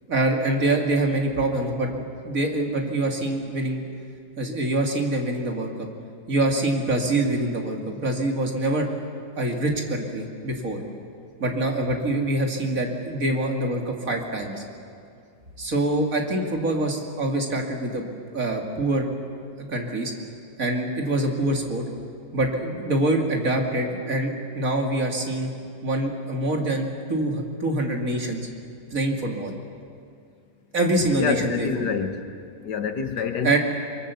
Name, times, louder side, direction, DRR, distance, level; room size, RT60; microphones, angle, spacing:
voice 1, 0.1-3.8 4.4-5.9 6.3-8.9 9.4-10.8 11.4-14.6 15.6-18.0 18.3-19.1 19.6-20.1 20.6-21.8 22.3-25.5 25.8-28.5 28.9-29.5 30.7-31.8 33.4-33.6, right 1 dB, 45° right, 1 dB, 2.7 m, -25 dB
voice 2, 31.2-32.2 32.6-33.6, left 6 dB, 65° left, 7 dB, 1.7 m, -26 dB
24.0 x 23.0 x 7.0 m, 2.4 s
omnidirectional pair, 2.0 m